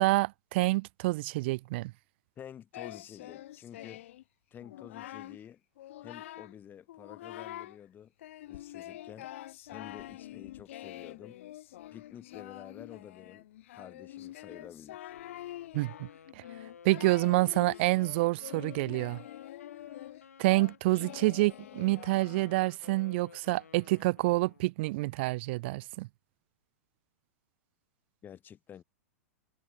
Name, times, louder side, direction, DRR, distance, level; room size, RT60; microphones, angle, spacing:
voice 1, 0.0-1.9 15.7-16.1 16.8-19.2 20.4-26.1, right 21 dB, 45° right, 0.4 m, -28 dB
voice 2, 2.4-4.0 4.5-5.6 6.0-8.1 8.5-9.3 9.7-11.4 11.9-13.4 13.7-15.1 28.2-28.8, left 9 dB, 20° left, 1.6 m, -50 dB
Singing, 2.7-4.2 4.6-5.4 5.8-6.6 6.9-7.8 8.2-22.7, left 14 dB, 55° left, 1.7 m, -46 dB
Wind instrument woodwind instrument, 15.1-24.7, left 7 dB, 70° left, 2.2 m, -55 dB
figure-of-eight pair, 100°, 8 cm